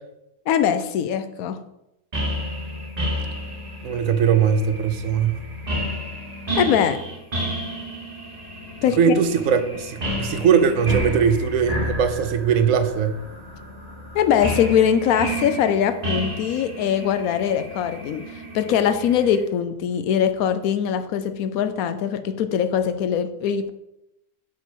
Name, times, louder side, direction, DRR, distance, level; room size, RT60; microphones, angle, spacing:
voice 1, 0.5-1.6 6.6-7.0 8.8-9.0 14.1-23.7, left 8 dB, 80° left, 10 dB, 1.1 m, -22 dB
sound 1, 2.1-19.4, equal, 30° right, 1.1 m, -31 dB
voice 2, 3.8-5.4 9.0-13.2, right 7 dB, 70° right, 9 dB, 1.0 m, -20 dB
5.2 x 5.1 x 6.1 m, 0.88 s
omnidirectional pair, 1.5 m